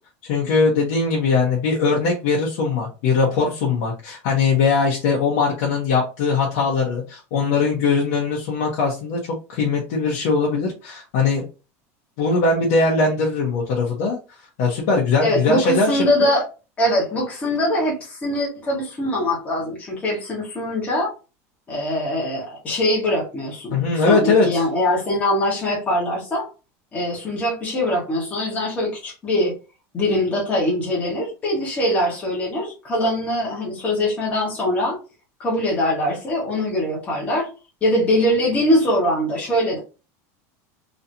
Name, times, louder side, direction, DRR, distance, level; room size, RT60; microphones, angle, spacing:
voice 1, 0.2-11.4 12.2-14.2 14.6-16.3 23.7-24.6, left 4 dB, 60° left, -3 dB, 1.1 m, -20 dB
voice 2, 15.2-16.4 16.8-21.1 21.7-26.5 26.9-29.5 29.9-35.0 35.4-37.5 37.8-39.8, left 1 dB, 20° left, -3 dB, 1.2 m, -22 dB
3.1 x 2.8 x 2.6 m, 0.31 s
cardioid pair, 170°, 8 cm